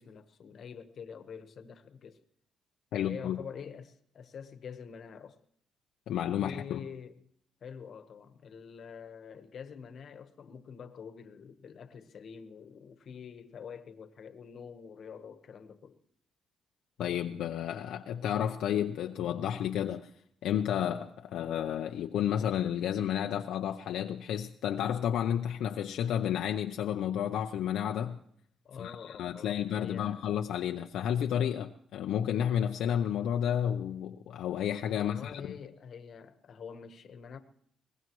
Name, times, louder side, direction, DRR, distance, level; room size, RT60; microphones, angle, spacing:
voice 1, 0.0-2.2 2.9-5.4 6.3-7.2 7.6-16.0 28.6-30.4 34.9-37.4, left 7 dB, 60° left, 1.2 m, -46 dB
voice 2, 2.9-3.4 6.1-6.8 17.0-20.1 20.4-28.2 28.8-35.4, left 9 dB, 80° left, 0.6 m, -31 dB
23.0 x 19.5 x 3.1 m
cardioid pair, 90°, 0 cm